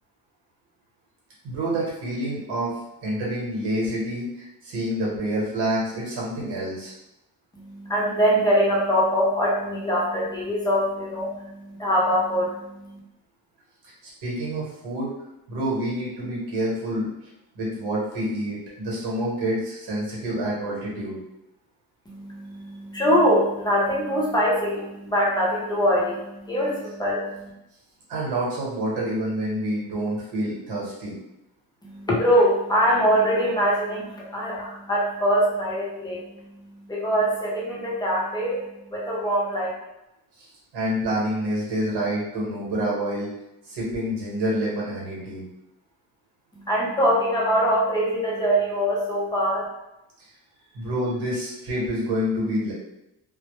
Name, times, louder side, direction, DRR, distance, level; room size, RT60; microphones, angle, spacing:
voice 1, 1.4-6.9 14.2-15.1 15.5-17.1 17.5-21.2 28.1-31.2 40.4-40.5 40.7-43.3 43.6-45.4 50.2-50.3 50.7-52.7, right 1 dB, 80° right, -5 dB, 1.0 m, -27 dB
voice 2, 7.5-13.0 22.1-27.5 31.8-39.7 46.5-49.6, equal, 10° left, -5 dB, 0.6 m, -23 dB
2.0 x 2.0 x 2.9 m, 0.90 s
cardioid pair, 130°, 39 cm